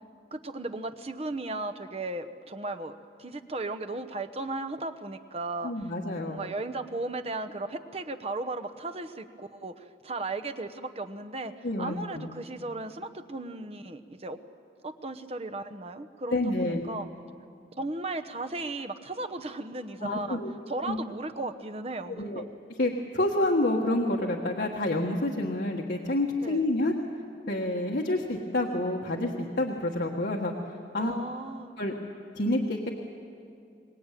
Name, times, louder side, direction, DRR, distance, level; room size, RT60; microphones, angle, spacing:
voice 1, 0.3-5.9 6.3-14.4 14.8-17.1 17.8-20.4 20.7-22.4 26.4-26.7 31.0-31.7, right 2 dB, 35° right, 8 dB, 1.0 m, -36 dB
voice 2, 5.6-6.5 11.6-12.3 16.3-16.9 20.0-20.5 20.8-21.0 22.1-22.4 22.8-27.0 27.5-30.5 30.9-31.1 31.8-31.9 32.3-32.9, left 1 dB, 65° left, -1 dB, 1.6 m, -28 dB
24.0 x 20.0 x 9.2 m, 2.4 s
head